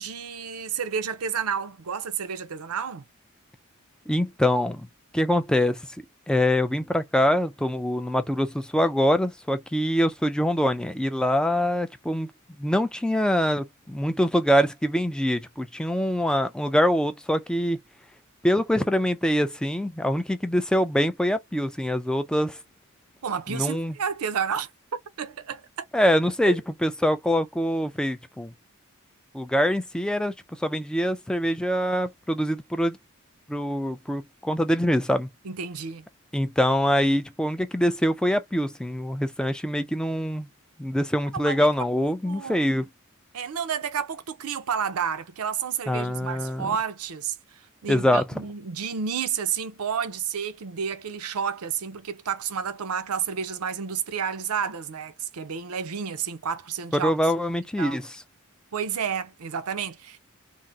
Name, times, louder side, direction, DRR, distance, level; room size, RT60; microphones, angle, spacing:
voice 1, 0.0-3.0 23.2-24.7 25.2-25.9 26.4-26.6 35.4-36.0 39.4-39.5 41.3-41.7 42.0-42.7 43.3-57.1 57.8-58.0 58.7-60.2, right 7 dB, 85° right, 0.6 m, -31 dB
voice 2, 4.1-4.9 5.1-5.9 6.3-12.3 12.6-17.8 18.4-22.6 23.5-23.9 25.9-28.5 29.3-33.0 33.5-35.3 36.3-40.5 40.8-42.9 45.9-46.7 47.9-48.2 56.9-58.0, equal, 5° left, 0.4 m, -24 dB
3.5 x 2.0 x 2.6 m
head